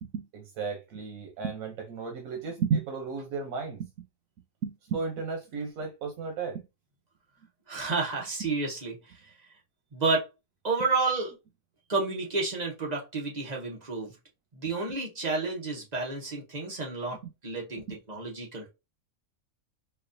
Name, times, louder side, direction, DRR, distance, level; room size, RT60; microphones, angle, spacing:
voice 1, 0.0-3.9 4.6-6.6 17.2-17.3 17.9-18.0, right 5 dB, 90° right, 1.1 m, -33 dB
voice 2, 7.7-9.0 9.9-10.3 10.6-11.3 11.9-14.1 14.5-17.2 17.4-17.8 18.1-18.7, right 3 dB, 35° right, 1.0 m, -30 dB
4.3 x 2.4 x 2.6 m
omnidirectional pair, 1.4 m